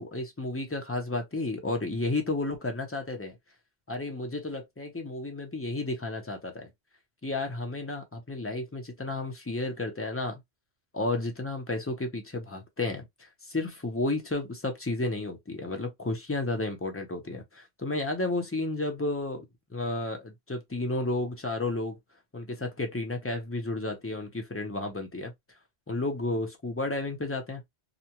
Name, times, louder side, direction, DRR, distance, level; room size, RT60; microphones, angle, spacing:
voice 1, 0.0-3.4 3.9-6.7 7.2-10.4 10.9-19.4 19.7-22.0 22.3-25.3 25.9-27.6, left 2 dB, 15° left, 0.5 m, -32 dB
2.5 x 2.2 x 2.8 m
omnidirectional pair, 1.2 m